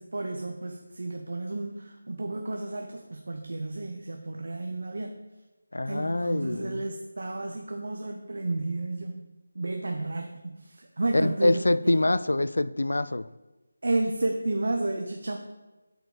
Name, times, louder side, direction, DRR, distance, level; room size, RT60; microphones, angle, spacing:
voice 1, 0.0-5.2 5.9-9.2 9.5-12.0 13.8-15.4, right 2 dB, 65° right, 0.8 m, -32 dB
voice 2, 5.7-6.8 11.1-13.3, left 2 dB, 85° left, 0.4 m, -25 dB
7.9 x 4.8 x 4.9 m
figure-of-eight pair, 175°, 0 cm